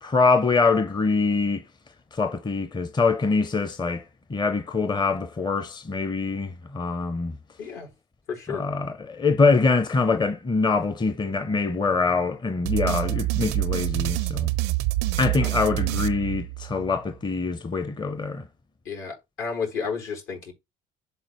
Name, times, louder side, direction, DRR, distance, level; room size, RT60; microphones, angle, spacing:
voice 1, 0.0-1.6 2.1-4.0 4.3-7.4 8.5-14.5 15.2-18.4, left 4 dB, 20° left, 0.7 m, -24 dB
voice 2, 7.6-7.9 8.3-8.7 15.4-15.5 18.8-20.5, left 5 dB, 75° left, 4.2 m, -32 dB
sound 1, 12.7-16.9, right 18 dB, 80° right, 0.5 m, -26 dB
11.0 x 3.9 x 3.0 m
supercardioid pair, 75°, 20 cm